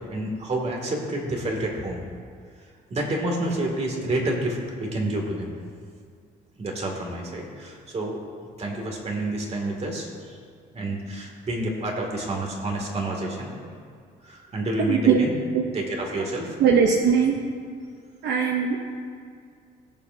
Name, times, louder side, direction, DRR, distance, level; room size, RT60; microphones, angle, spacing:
voice 1, 0.1-2.0 2.9-5.5 6.6-8.2 8.6-10.4 10.7-13.7 14.2-15.3 15.7-16.5, right 1 dB, 40° right, 0 dB, 2.5 m, -29 dB
voice 2, 14.8-15.7 16.6-17.4 18.2-19.0, right 6 dB, 80° right, 2 dB, 0.9 m, -21 dB
20.0 x 7.1 x 2.8 m, 2.1 s
cardioid pair, 100°, 17 cm